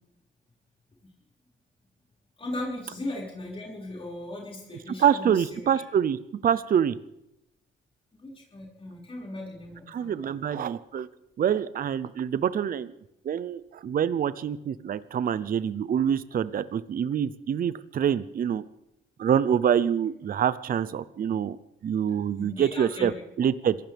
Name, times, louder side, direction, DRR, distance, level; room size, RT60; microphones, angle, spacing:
voice 1, 2.4-5.7 8.2-10.4 22.4-23.1, left 1 dB, 25° left, -3 dB, 5.4 m, -37 dB
voice 2, 5.0-7.0 9.9-11.1 11.4-12.9 13.2-18.6 19.2-21.6 21.8-23.1 23.4-23.8, right 8 dB, 45° right, 15 dB, 0.6 m, -26 dB
26.5 x 15.5 x 3.5 m, 0.84 s
cardioid pair, 90°, 20 cm